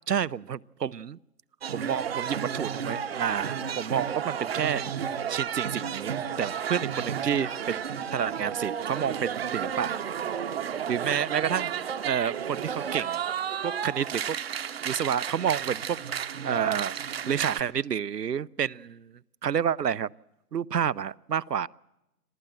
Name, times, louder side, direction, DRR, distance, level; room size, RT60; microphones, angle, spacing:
voice 1, 0.1-1.2 1.7-4.9 5.3-9.9 10.9-13.2 13.6-14.4 14.8-17.0 17.3-20.1 20.5-21.7, right 8 dB, 85° right, 0.7 m, -29 dB
sound 1, 1.6-17.6, right 8 dB, 40° right, 1.1 m, -32 dB
26.5 x 15.0 x 8.9 m
figure-of-eight pair, 145°, 47 cm